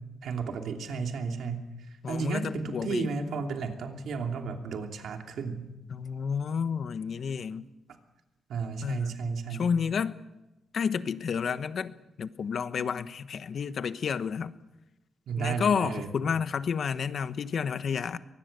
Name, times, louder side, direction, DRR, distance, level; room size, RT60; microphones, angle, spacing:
voice 1, 0.2-1.7 2.1-5.7 8.5-9.7 12.8-12.9 15.3-16.1, right 5 dB, 80° right, 2.9 m, -33 dB
voice 2, 2.0-3.1 5.9-7.7 8.8-9.2 9.5-10.2 10.7-11.9 12.2-14.5 15.4-18.2, left 6 dB, 60° left, 1.1 m, -30 dB
24.0 x 20.5 x 6.8 m
cardioid pair, 110°, 0 cm